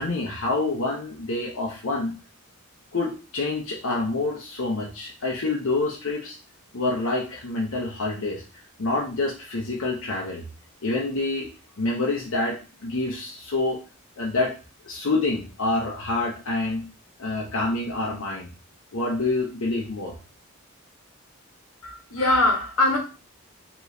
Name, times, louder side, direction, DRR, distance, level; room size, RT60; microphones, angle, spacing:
voice 1, 0.0-2.1 2.9-6.4 6.7-8.4 8.8-10.4 10.8-11.5 11.8-13.8 14.2-14.6 14.8-16.9 17.2-18.5 18.9-20.2, left 2 dB, 70° left, 0.7 m, -27 dB
voice 2, 21.8-23.0, left 2 dB, 90° left, 1.2 m, -22 dB
4.9 x 3.0 x 2.6 m
head